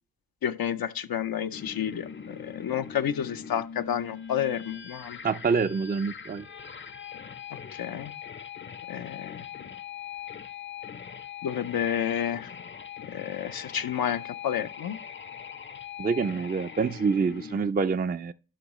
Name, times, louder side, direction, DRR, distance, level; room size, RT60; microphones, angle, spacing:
voice 1, 0.4-5.2 7.7-8.1 8.9-9.5 11.4-12.5 13.1-15.0, left 9 dB, 85° left, 0.5 m, -30 dB
sound 1, 1.5-17.7, left 7 dB, 35° left, 0.5 m, -42 dB
voice 2, 5.2-6.5 16.0-18.3, right 5 dB, 25° right, 0.4 m, -26 dB
11.5 x 5.4 x 3.0 m
cardioid pair, 40°, 35 cm